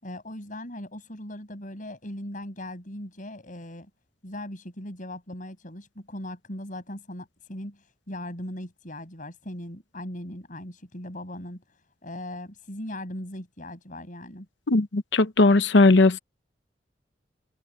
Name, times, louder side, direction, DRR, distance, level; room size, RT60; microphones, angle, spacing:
voice 1, 0.0-3.9 4.2-14.5, left 1 dB, 45° left, 7.3 m, -39 dB
voice 2, 14.7-16.2, left 2 dB, 70° left, 0.8 m, -18 dB
head